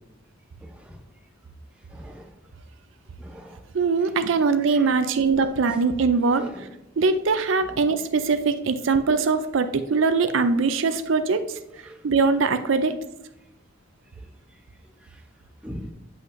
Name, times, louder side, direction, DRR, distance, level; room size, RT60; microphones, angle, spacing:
voice 1, 0.6-1.0 1.9-2.3 3.2-3.6 4.7-5.0 6.3-6.6 11.9-12.0 15.6-15.9, equal, 5° right, 0.6 m, -40 dB
voice 2, 3.7-6.7 7.0-11.6 12.0-13.0, right 4 dB, 70° right, 0.4 m, -22 dB
7.9 x 5.6 x 2.6 m
head